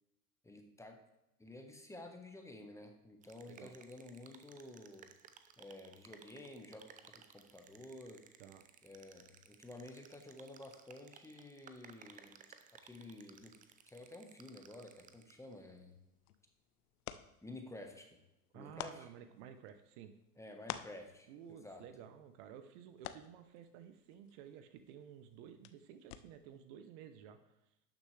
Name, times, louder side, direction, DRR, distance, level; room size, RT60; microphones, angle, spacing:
voice 1, 0.4-1.0 1.4-5.1 5.6-8.2 8.8-12.4 12.8-13.6 13.8-15.9 17.4-18.2 18.5-19.1 20.4-21.8, left 2 dB, 5° left, 4 dB, 1.2 m, -52 dB
sound 1, 3.2-15.5, right 7 dB, 20° right, 0.5 m, -61 dB
sound 2, 15.9-26.6, left 12 dB, 70° left, 0.7 m, -53 dB
voice 2, 18.5-20.1 21.3-27.6, right 9 dB, 50° right, 9 dB, 0.9 m, -54 dB
11.5 x 6.5 x 3.3 m, 0.90 s
hypercardioid pair, 100°, 46 cm